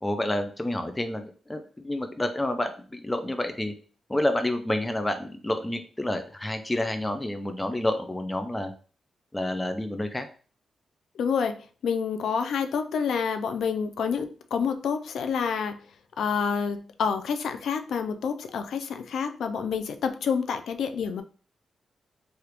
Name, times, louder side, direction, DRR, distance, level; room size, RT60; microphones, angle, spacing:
voice 1, 0.0-3.7 4.1-8.7 9.3-10.3, left 1 dB, 15° left, 7 dB, 0.4 m, -29 dB
voice 2, 11.2-15.8 16.2-21.2, left 6 dB, 85° left, 8 dB, 0.4 m, -28 dB
3.3 x 2.4 x 2.9 m, 0.39 s
cardioid pair, 90°, 0 cm